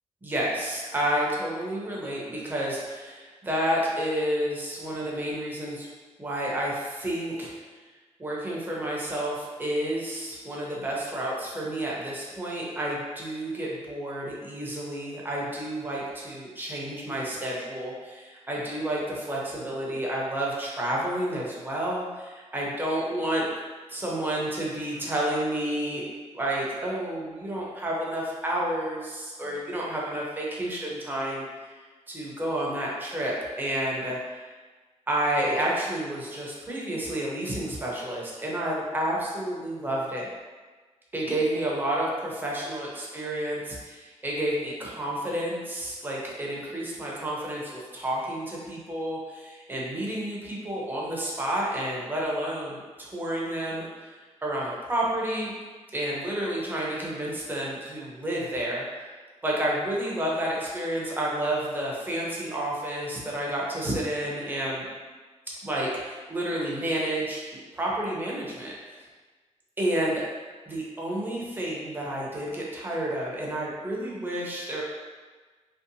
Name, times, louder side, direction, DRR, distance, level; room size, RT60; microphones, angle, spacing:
voice 1, 0.2-5.9 6.2-7.5 8.2-23.4 23.9-26.0 26.3-31.4 32.1-34.4 35.1-40.3 41.1-53.9 54.4-55.5 55.9-58.8 59.4-64.9 65.5-67.4 67.7-69.0 69.8-70.2 70.7-74.8, right 1 dB, 15° right, -4 dB, 0.6 m, -30 dB
2.7 x 2.1 x 2.6 m, 1.4 s
cardioid pair, 110°, 12 cm